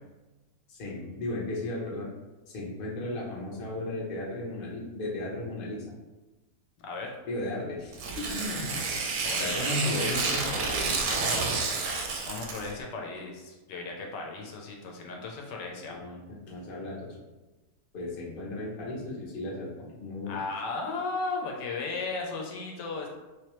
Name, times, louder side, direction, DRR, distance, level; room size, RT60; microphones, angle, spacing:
voice 1, 0.7-2.1 2.5-5.8 7.3-8.7 9.4-11.2 15.8-16.2 16.5-17.1 17.9-20.4, left 1 dB, 40° left, -4 dB, 0.8 m, -35 dB
voice 2, 6.8-7.1 9.2-10.0 12.2-16.0 20.2-23.1, left 3 dB, 85° left, 0 dB, 1.3 m, -35 dB
Tearing, 7.9-12.7, right 4 dB, 70° right, 1.0 m, -30 dB
3.3 x 3.2 x 3.0 m, 1.1 s
omnidirectional pair, 1.9 m